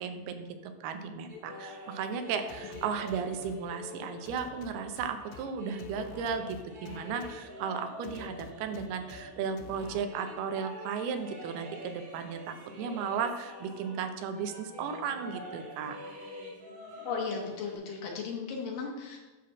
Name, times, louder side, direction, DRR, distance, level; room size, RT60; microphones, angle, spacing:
voice 1, 0.0-16.0, right 6 dB, 80° right, 7 dB, 2.7 m, -35 dB
sound 1, 1.3-14.1 14.3-17.7, left 2 dB, 60° right, 4.8 m, -46 dB
sound 2, 2.5-3.6 4.3-5.4 5.8-7.3 8.0-9.2 9.6-10.0, left 7 dB, 85° left, 2.6 m, -48 dB
voice 2, 17.0-19.2, left 5 dB, 65° left, 0 dB, 2.8 m, -35 dB
11.5 x 4.3 x 6.3 m, 1.2 s
omnidirectional pair, 4.5 m